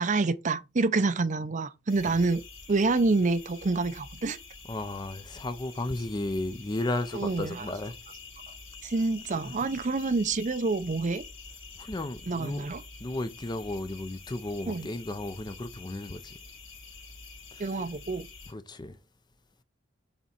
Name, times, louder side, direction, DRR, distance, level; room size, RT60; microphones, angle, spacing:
voice 1, 0.0-2.4 2.7-4.4 7.1-7.7 8.8-11.2 12.3-12.8 14.7-14.9 17.6-18.2, right 3 dB, 40° right, 0.5 m, -27 dB
sound 1, 1.9-18.5, left 4 dB, 75° left, 2.1 m, -47 dB
voice 2, 4.7-7.9 9.4-9.5 11.8-12.6 13.0-16.3 17.5-17.6 18.5-19.0, left 2 dB, 20° left, 0.5 m, -34 dB
5.8 x 4.1 x 4.3 m
head